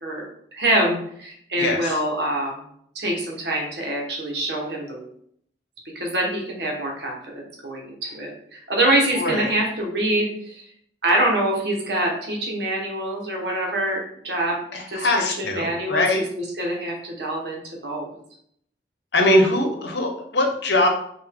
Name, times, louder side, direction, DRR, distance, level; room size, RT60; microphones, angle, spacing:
voice 1, 0.5-2.6 2.9-5.1 5.9-10.6 11.0-14.6 14.9-18.1, right 1 dB, 75° right, -1 dB, 1.3 m, -25 dB
voice 2, 1.6-1.9 9.1-9.5 14.7-16.2 19.1-20.9, left 1 dB, 80° left, 3 dB, 0.9 m, -21 dB
5.3 x 2.6 x 3.6 m, 0.68 s
head